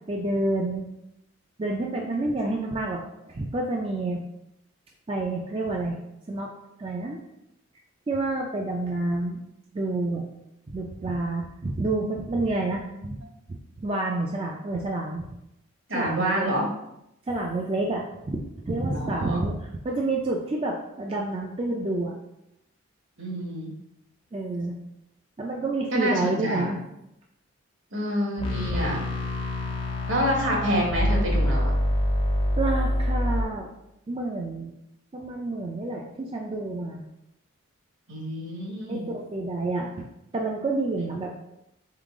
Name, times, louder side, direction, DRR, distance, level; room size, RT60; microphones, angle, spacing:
voice 1, 0.1-0.9 1.6-3.0 3.3-4.2 5.1-5.9 6.3-6.5 6.8-7.2 8.1-9.4 9.7-10.3 10.7-12.8 13.8-15.3 15.9-16.5 17.3-22.1 24.3-24.8 25.4-26.8 32.6-33.7 34.1-34.7 35.1-37.0 38.9-40.1 40.3-41.3, right 2 dB, 25° right, -1 dB, 0.4 m, -28 dB
voice 2, 15.9-16.7 18.9-19.4 23.2-23.8 25.9-26.8 27.9-29.0 30.1-31.7 38.1-39.1 41.0-41.1, equal, 65° right, -1 dB, 1.2 m, -28 dB
sound 1, 28.4-33.4, left 1 dB, 25° left, 0.6 m, -25 dB
3.9 x 3.8 x 3.6 m, 0.86 s
head